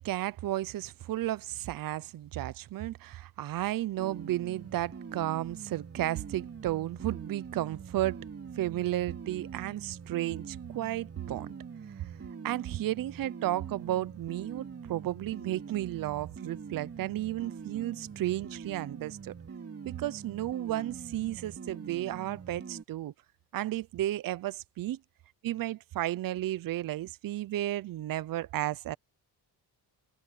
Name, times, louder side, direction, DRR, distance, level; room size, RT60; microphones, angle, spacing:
voice 1, 0.0-8.2 8.6-11.5 12.0-12.1 12.4-19.3 19.9-23.1 23.5-25.0 25.4-29.0, right 14 dB, 55° right, 0.7 m, -33 dB
sound 1, 4.0-22.8, right 6 dB, 35° right, 3.3 m, -44 dB
cardioid pair, 110°, 40 cm